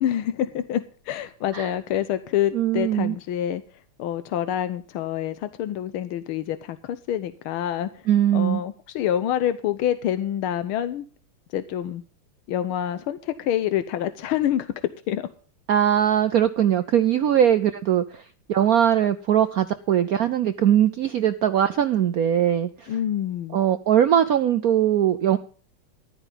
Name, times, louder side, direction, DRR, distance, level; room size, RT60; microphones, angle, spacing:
voice 1, 0.0-3.6 4.0-7.9 8.3-11.0 11.5-12.0 12.5-14.7 15.1-15.3 22.9-23.6, left 11 dB, 90° left, 11 dB, 1.6 m, -27 dB
voice 2, 2.5-3.2 8.1-8.6 15.7-18.2 18.5-23.0 23.5-25.4, right 10 dB, 75° right, 10 dB, 0.8 m, -21 dB
14.0 x 11.5 x 3.9 m, 0.42 s
omnidirectional pair, 2.3 m